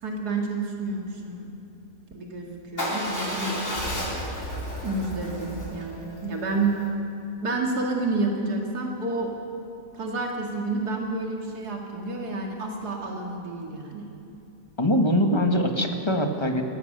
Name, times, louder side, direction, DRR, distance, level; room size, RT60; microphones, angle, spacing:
voice 1, 0.0-1.5 2.1-3.7 4.8-6.8 7.4-9.3 9.9-14.1, right 3 dB, 75° right, 0 dB, 2.6 m, -29 dB
Motorcycle / Engine starting / Idling, 2.8-6.9, equal, 50° left, 4.3 m, -32 dB
voice 2, 14.8-16.6, equal, 15° left, 4 dB, 1.5 m, -22 dB
21.5 x 18.5 x 6.7 m, 2.9 s
omnidirectional pair, 1.7 m